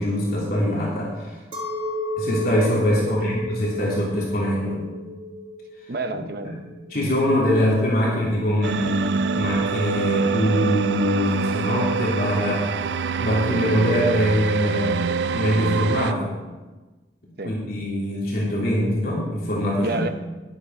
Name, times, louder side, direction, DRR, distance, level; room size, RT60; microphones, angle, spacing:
voice 1, 0.0-1.4 2.2-4.8 6.1-6.2 6.9-12.7 13.2-15.0 15.3-16.3 17.4-19.9, equal, 55° left, -5 dB, 3.3 m, -23 dB
Chink clink, 1.5-7.0, left 1 dB, 30° right, 1.6 m, -32 dB
voice 2, 3.0-3.3 5.9-6.6 17.4-17.5 19.8-20.1, right 2 dB, 60° right, 8 dB, 0.9 m, -29 dB
sound 1, 8.6-16.1, right 5 dB, 75° right, 0.4 m, -25 dB
11.5 x 10.5 x 4.7 m, 1.2 s
head